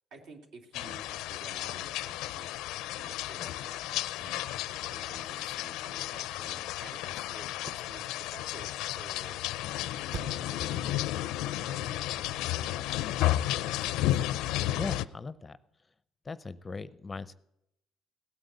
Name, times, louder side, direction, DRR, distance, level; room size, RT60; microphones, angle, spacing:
voice 1, 0.1-2.6 2.9-9.4 10.1-10.9 11.7-14.2, right 3 dB, 70° right, 4 dB, 2.7 m, -52 dB
sound 1, 0.7-15.1, left 14 dB, 90° left, 0.4 m, -33 dB
Fireworks, 7.5-13.4 13.8-13.9, right 7 dB, 45° right, 0.7 m, -49 dB
voice 2, 14.7-15.6 16.2-17.3, left 3 dB, 20° left, 15 dB, 0.6 m, -38 dB
16.5 x 9.3 x 8.1 m, 0.82 s
cardioid pair, 135°, 0 cm